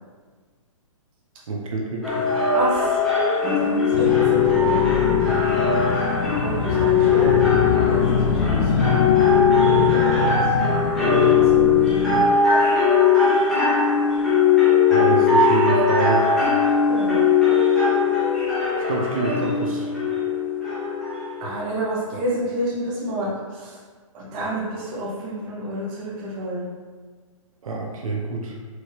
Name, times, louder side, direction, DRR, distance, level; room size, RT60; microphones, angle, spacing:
voice 1, 1.5-2.3 14.9-16.2 18.8-19.9 27.6-28.6, right 3 dB, 75° right, -1 dB, 0.8 m, -27 dB
sound 1, 2.0-21.6, left 5 dB, ahead, 1.0 m, -19 dB
voice 2, 2.5-3.0 3.4-5.3 6.4-7.3 7.9-9.0 9.6-10.5 11.0-11.8 16.9-17.2 21.4-23.8 24.1-26.6, right 1 dB, 25° right, -6 dB, 1.1 m, -29 dB
sound 2, 3.9-12.3, left 5 dB, 75° left, 0.5 m, -24 dB
4.7 x 2.8 x 3.2 m, 1.5 s
hypercardioid pair, 155°, 18 cm